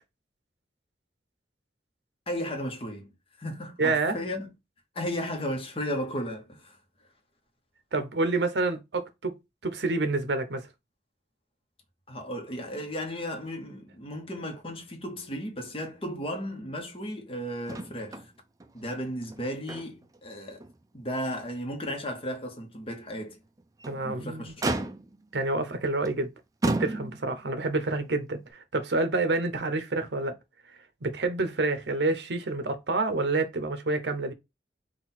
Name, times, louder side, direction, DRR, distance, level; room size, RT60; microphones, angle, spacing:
voice 1, 2.3-4.5 4.9-6.8 12.1-18.3 18.7-20.7 20.9-23.4 23.9-24.9, equal, 30° left, 1.0 m, -35 dB
voice 2, 3.8-4.2 7.9-9.4 9.6-10.7 23.9-24.5 25.3-26.3 26.6-30.4 31.0-34.3, right 3 dB, 75° right, 0.8 m, -28 dB
Motor vehicle (road), 17.7-18.3 18.6-18.7 19.2-20.2 20.6-20.7 21.3-21.4 23.6-24.0 24.6-25.3 26.0-26.2 26.6-27.4 28.5-28.6, right 2 dB, 20° right, 0.4 m, -32 dB
3.9 x 2.4 x 4.1 m
head